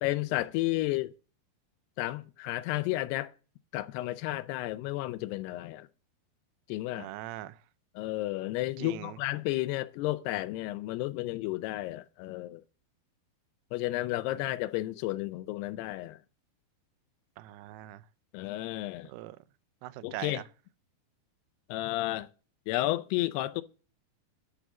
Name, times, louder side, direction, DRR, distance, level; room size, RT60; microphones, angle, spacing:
voice 1, 0.0-1.1 2.0-3.3 3.7-5.9 6.7-7.1 8.0-12.6 13.7-16.2 18.3-19.1 20.0-20.4 21.7-22.3 22.7-23.6, left 17 dB, 90° left, 2.7 m, -32 dB
voice 2, 7.0-7.5 8.8-9.1 17.4-18.0 19.1-19.4 19.8-20.4, right 15 dB, 90° right, 2.7 m, -41 dB
11.5 x 5.0 x 7.3 m
omnidirectional pair, 4.6 m